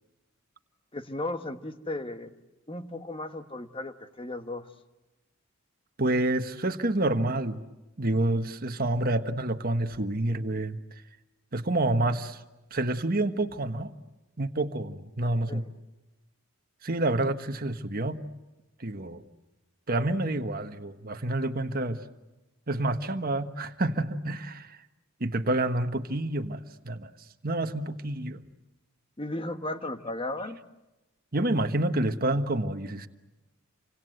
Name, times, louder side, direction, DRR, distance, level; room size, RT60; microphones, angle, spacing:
voice 1, 0.9-2.3 2.7-4.7 15.5-15.7 29.2-30.6, left 2 dB, 25° left, 8 dB, 1.3 m, -35 dB
voice 2, 6.0-7.6 8.0-10.8 11.5-12.4 12.7-13.9 14.4-15.6 16.8-18.2 18.8-19.2 19.9-22.0 22.7-24.8 25.2-27.1 27.4-28.4 31.3-33.1, right 2 dB, 45° right, 7 dB, 1.3 m, -28 dB
29.0 x 25.5 x 7.9 m, 1.0 s
head